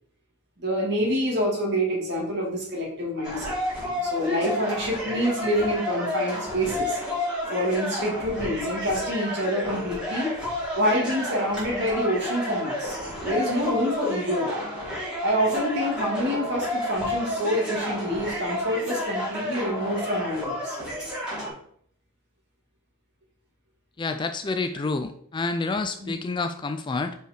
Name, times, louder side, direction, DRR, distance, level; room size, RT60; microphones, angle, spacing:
voice 1, 0.6-7.0 7.5-10.4 10.7-13.0 13.2-14.6 15.2-20.8 26.0-26.1, equal, 55° right, -2 dB, 2.2 m, -27 dB
sound 1, 3.2-21.5, left 1 dB, 5° right, 2.6 m, -31 dB
voice 2, 24.0-27.2, left 3 dB, 20° left, 8 dB, 0.3 m, -28 dB
5.1 x 4.7 x 4.4 m, 0.62 s
head